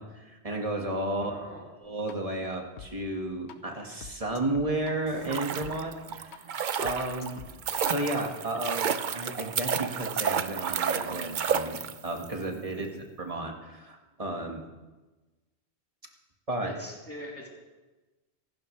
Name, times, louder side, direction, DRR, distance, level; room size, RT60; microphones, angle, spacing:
voice 1, 0.0-1.3 1.8-7.4 7.7-12.9 13.2-14.7 16.5-16.7, right 1 dB, 30° right, 1 dB, 1.8 m, -33 dB
voice 2, 1.1-1.6 12.7-13.0 16.6-17.5, equal, 10° left, -3 dB, 3.2 m, -43 dB
sound 1, 2.1-2.2 2.8-2.9 3.5-3.6 4.0-5.7 6.3-6.4 6.8-7.8, left 7 dB, 85° left, 1.2 m, -45 dB
sound 2, 5.1-12.3 12.5-12.6, right 7 dB, 50° right, 0.7 m, -31 dB
25.5 x 12.0 x 3.3 m, 1.2 s
omnidirectional pair, 1.1 m